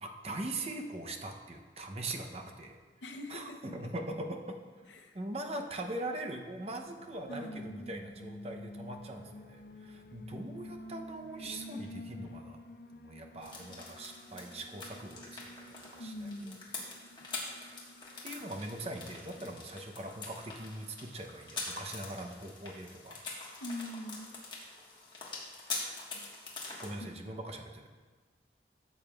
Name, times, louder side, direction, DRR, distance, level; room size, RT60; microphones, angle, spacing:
voice 1, 0.0-2.8 3.3-4.6 5.1-12.6 12.9-16.6 18.2-23.2 26.8-27.9, right 1 dB, 35° right, 3 dB, 0.7 m, -41 dB
voice 2, 3.0-3.9 4.9-5.2 7.3-7.9 16.0-16.7 23.6-24.4 26.1-26.3 27.0-27.1, left 1 dB, 90° left, 5 dB, 0.7 m, -43 dB
Alarm, 6.2-19.7, left 1 dB, 55° left, 0.5 m, -51 dB
sound 1, 13.4-26.9, left 3 dB, 25° left, 1.4 m, -44 dB
13.5 x 7.1 x 2.4 m, 1.4 s
head